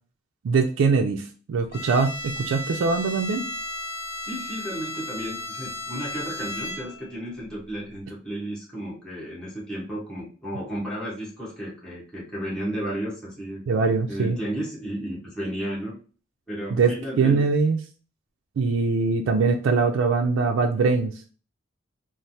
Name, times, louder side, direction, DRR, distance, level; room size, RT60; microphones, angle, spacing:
voice 1, 0.4-3.4 13.7-14.4 16.7-17.8 18.6-21.1, right 4 dB, 80° right, 3 dB, 0.3 m, -22 dB
Bowed string instrument, 1.7-7.1, left 1 dB, 60° left, 0.6 m, -34 dB
voice 2, 4.2-13.6 14.1-16.0 16.5-17.5, equal, 5° left, -7 dB, 1.1 m, -33 dB
3.1 x 2.0 x 2.7 m, 0.38 s
head